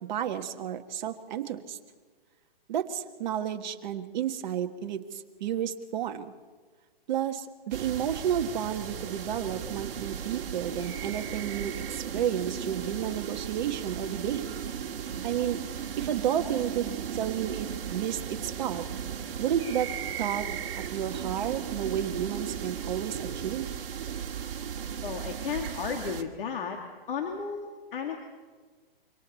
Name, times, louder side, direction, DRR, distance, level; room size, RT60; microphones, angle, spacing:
voice 1, 0.0-1.8 2.7-6.3 7.1-14.4 15.2-15.6 16.0-18.9 19.4-23.7, right 9 dB, 45° right, 6 dB, 1.5 m, -31 dB
sound 1, 7.7-26.2, right 8 dB, 65° right, 1.9 m, -36 dB
voice 2, 25.0-26.8 27.1-28.2, left 6 dB, 60° left, 3 dB, 2.2 m, -34 dB
26.0 x 24.5 x 4.2 m, 1.4 s
hypercardioid pair, 145°, 31 cm